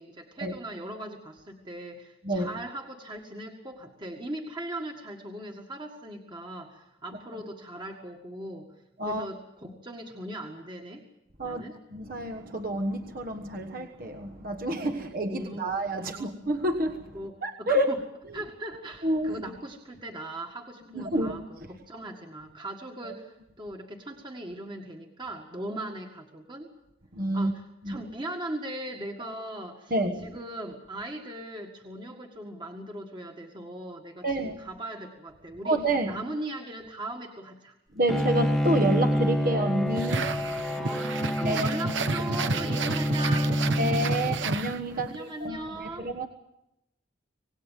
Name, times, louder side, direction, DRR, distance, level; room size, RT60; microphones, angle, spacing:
voice 1, 0.0-8.7 9.0-11.0 11.4-11.7 15.3-15.7 15.9-16.3 17.1-18.0 18.3-23.3 23.6-26.7 27.3-29.9 30.2-34.3 34.6-35.8 36.1-37.7 40.7-43.6 44.9-46.1, right 1 dB, 25° right, 1.9 m, -39 dB
voice 2, 11.9-17.9 18.2-18.4 19.0-19.3 20.9-21.4 23.0-23.1 27.1-27.5 27.8-28.0 29.9-30.3 34.2-34.6 35.6-36.2 37.9-40.8 41.4-41.7 43.8-46.3, right 1 dB, 50° right, 1.4 m, -29 dB
Bowed string instrument, 38.1-44.8, equal, ahead, 1.0 m, -28 dB
sound 1, 39.9-45.2, right 3 dB, 80° right, 1.1 m, -31 dB
26.0 x 19.0 x 7.5 m
head